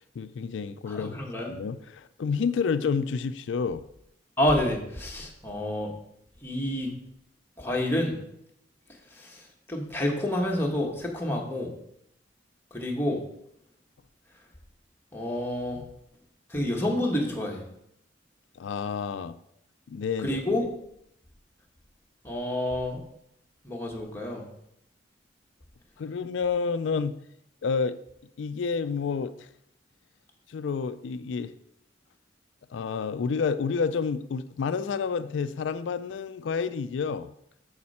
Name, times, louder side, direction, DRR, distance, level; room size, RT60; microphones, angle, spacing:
voice 1, 0.0-1.2 1.5-3.8 15.7-15.9 18.6-19.4 19.9-20.4 26.0-27.2 27.6-28.0 28.4-29.5 30.5-31.5 32.7-37.3, left 5 dB, 85° left, 13 dB, 0.4 m, -29 dB
voice 2, 0.9-1.5 4.4-5.9 6.4-6.9 7.6-8.2 9.1-9.4 9.7-11.7 12.7-13.2 15.1-15.8 16.5-17.7 20.2-20.7 22.2-23.0 23.6-24.4, left 1 dB, 10° left, -1 dB, 1.4 m, -28 dB
8.5 x 6.6 x 4.2 m, 0.76 s
head